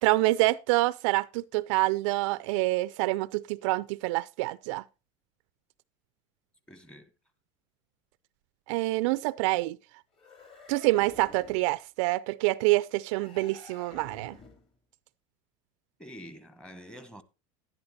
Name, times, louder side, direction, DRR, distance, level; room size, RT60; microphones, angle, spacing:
voice 1, 0.0-4.8 8.7-9.8 10.7-14.4, right 20 dB, 70° right, 0.4 m, -26 dB
voice 2, 6.7-7.1 16.0-17.2, equal, 5° left, 1.1 m, -47 dB
sound 1, 10.1-11.8 13.1-14.7, left 4 dB, 35° left, 2.7 m, -51 dB
11.5 x 10.5 x 2.7 m
supercardioid pair, 125°, 17 cm